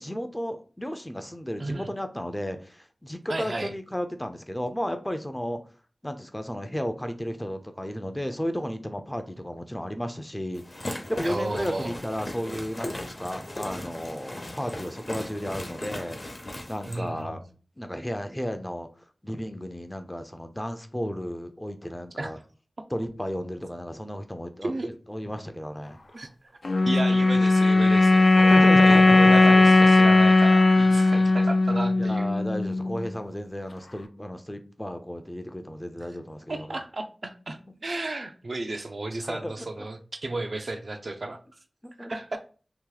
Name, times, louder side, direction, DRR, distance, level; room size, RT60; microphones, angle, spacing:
voice 1, 0.0-5.6 6.0-16.2 16.7-17.4 17.8-18.9 19.2-22.4 22.9-24.7 25.1-26.0 26.9-27.0 28.5-29.9 30.9-31.1 32.0-36.8 39.2-39.7 41.8-42.1, equal, 15° left, 7 dB, 0.5 m, -33 dB
voice 2, 3.3-3.7 11.2-11.9 16.9-17.4 22.2-22.3 24.6-24.9 26.1-26.3 26.8-32.3 36.5-41.4 42.0-42.4, right 2 dB, 65° right, 5 dB, 0.5 m, -33 dB
sound 1, 10.5-17.0, left 1 dB, 45° left, 0.8 m, -37 dB
sound 2, 26.6-33.1, left 2 dB, 70° left, 0.4 m, -18 dB
2.9 x 2.6 x 3.8 m, 0.38 s
wide cardioid pair, 70°, 0 cm